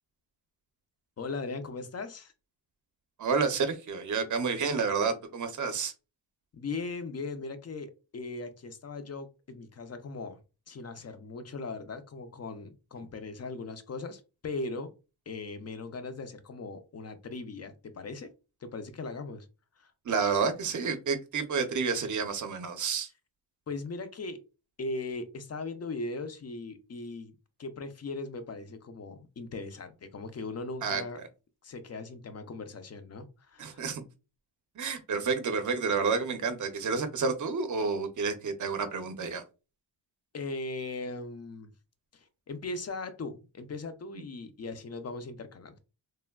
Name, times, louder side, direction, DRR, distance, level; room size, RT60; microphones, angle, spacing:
voice 1, 1.2-2.3 6.5-10.4 10.7-14.9 15.3-18.3 18.6-19.5 19.8-19.9 23.7-24.4 24.8-27.3 27.6-31.2 31.6-33.9 40.3-41.7 42.1-45.8, left 3 dB, 35° left, 10 dB, 0.4 m, -39 dB
voice 2, 3.2-5.9 20.0-23.1 30.8-31.0 33.6-34.0 34.8-39.4, right 5 dB, 40° right, 8 dB, 0.6 m, -30 dB
3.2 x 2.1 x 2.2 m, 0.31 s
cardioid pair, 95°, 49 cm